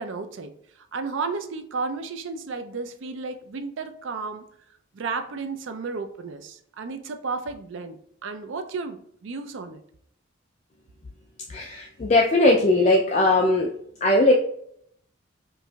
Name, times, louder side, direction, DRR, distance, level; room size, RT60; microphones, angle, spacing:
voice 1, 0.0-4.5 4.9-9.8, right 4 dB, 75° right, 0.4 m, -33 dB
voice 2, 11.5-13.7 14.0-14.3, left 2 dB, 35° left, 0.3 m, -19 dB
4.6 x 2.5 x 2.2 m
head